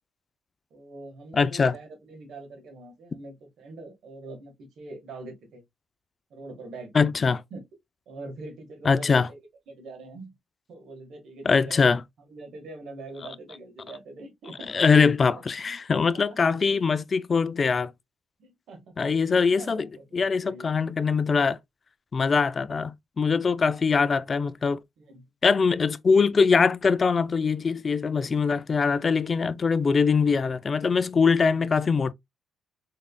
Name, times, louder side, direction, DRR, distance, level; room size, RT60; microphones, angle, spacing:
voice 1, 0.7-5.6 6.3-6.9 7.5-7.6 8.1-9.4 9.7-10.3 10.7-11.8 12.3-14.7 15.3-15.8 16.1-16.2 18.4-19.2 19.6-20.7 25.0-25.3, right 2 dB, 70° right, 1.5 m, -43 dB
voice 2, 1.3-1.7 6.9-7.4 8.8-9.3 11.5-12.0 14.7-17.9 19.0-21.6 22.1-24.8 25.4-32.1, left 5 dB, 40° left, 0.3 m, -22 dB
3.7 x 3.5 x 2.2 m
cardioid pair, 90°, 0 cm